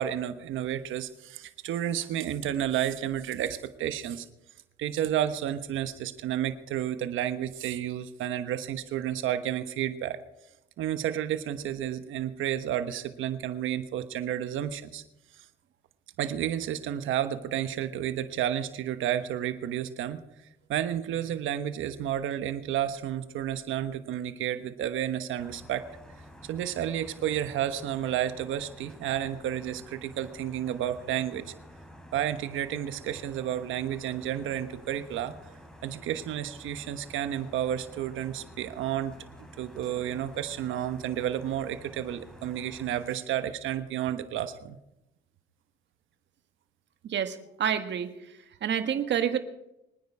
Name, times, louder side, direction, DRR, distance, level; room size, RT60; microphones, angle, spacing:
voice 1, 0.0-4.2 4.8-10.2 10.8-15.0 16.2-20.2 20.7-25.8 26.5-31.5 32.1-35.4 35.8-39.1 39.6-44.8, right 11 dB, 80° right, 10 dB, 1.2 m, -31 dB
sound 1, 25.4-43.1, equal, 5° left, 3.7 m, -50 dB
voice 2, 47.0-48.1 48.6-49.4, right 8 dB, 65° right, 8 dB, 1.6 m, -28 dB
25.0 x 9.7 x 4.8 m, 0.89 s
cardioid pair, 90°, 20 cm